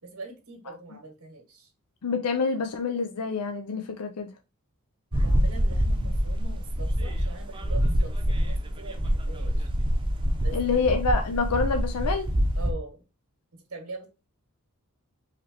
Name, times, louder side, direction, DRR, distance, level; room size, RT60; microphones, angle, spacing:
voice 1, 0.0-1.7 5.2-9.7 10.3-10.8 12.6-13.0 13.5-14.1, right 3 dB, 85° right, 1.8 m, -42 dB
voice 2, 2.0-4.3 10.5-12.3, left 4 dB, 85° left, 0.6 m, -27 dB
sound 1, 5.1-12.7, equal, 25° right, 0.7 m, -26 dB
4.9 x 3.2 x 2.9 m
head